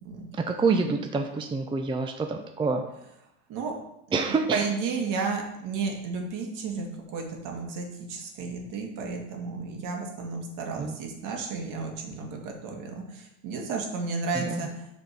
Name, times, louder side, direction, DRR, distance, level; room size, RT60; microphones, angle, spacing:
voice 1, 0.4-2.8 4.1-4.7 10.8-11.0 14.3-14.6, right 4 dB, 15° right, 5 dB, 0.6 m, -27 dB
voice 2, 4.5-14.7, right 4 dB, 55° right, 2 dB, 2.1 m, -32 dB
8.1 x 4.3 x 5.8 m, 0.84 s
supercardioid pair, 115°, 37 cm